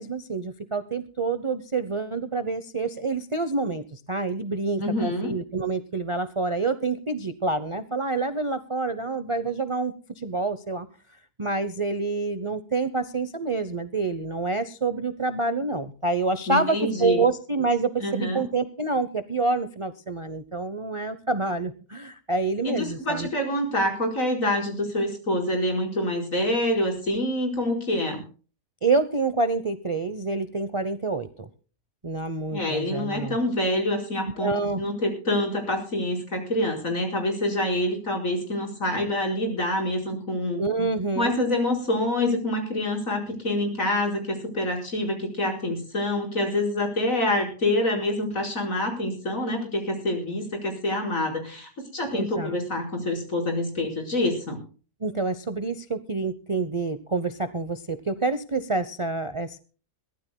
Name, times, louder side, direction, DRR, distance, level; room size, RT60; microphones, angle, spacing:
voice 1, 0.0-10.9 11.4-23.3 28.8-31.5 32.0-33.4 34.4-34.8 40.6-41.5 52.1-52.5 55.0-59.6, right 3 dB, 30° right, 11 dB, 0.6 m, -27 dB
voice 2, 4.8-5.3 16.5-17.2 18.0-18.4 22.6-28.2 32.5-40.6 41.2-54.6, left 1 dB, 50° left, 1 dB, 5.2 m, -26 dB
22.5 x 15.5 x 2.3 m, 0.38 s
omnidirectional pair, 1.8 m